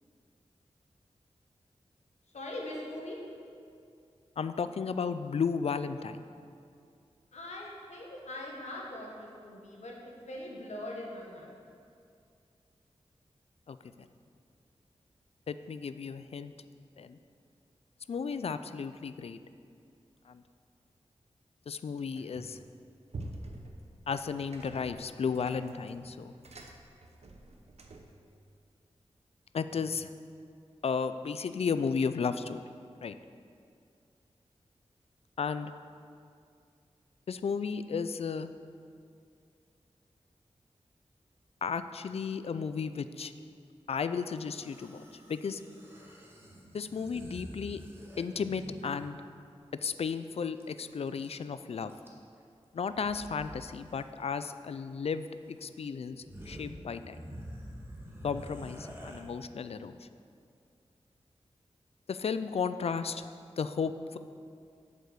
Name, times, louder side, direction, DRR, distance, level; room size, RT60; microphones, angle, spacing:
voice 1, 2.3-3.2 7.3-11.6, left 1 dB, 85° left, -2 dB, 1.4 m, -42 dB
voice 2, 4.4-6.2 13.7-14.1 15.5-16.5 17.0-17.2 18.1-19.4 20.3-20.4 21.7-22.6 24.1-26.3 29.5-30.1 30.8-32.6 33.0-33.2 35.4-35.7 37.3-38.5 41.6-43.3 43.9-45.6 46.7-47.8 48.2-49.2 49.8-51.9 52.7-57.2 58.2-60.0 62.1-63.2 63.6-64.2, left 5 dB, 65° left, 12 dB, 0.4 m, -34 dB
sound 1, 22.2-22.7 23.1-28.2, right 2 dB, 70° right, 0.8 m, -47 dB
sound 2, 44.4-49.1 50.6-50.7 50.9-51.5 51.9-52.4 52.9-53.6 53.9-54.1 55.2-55.3 55.8-55.9 56.1-59.2, equal, 20° right, 1.4 m, -47 dB
7.6 x 5.5 x 6.4 m, 2.4 s
wide cardioid pair, 70°, 11 cm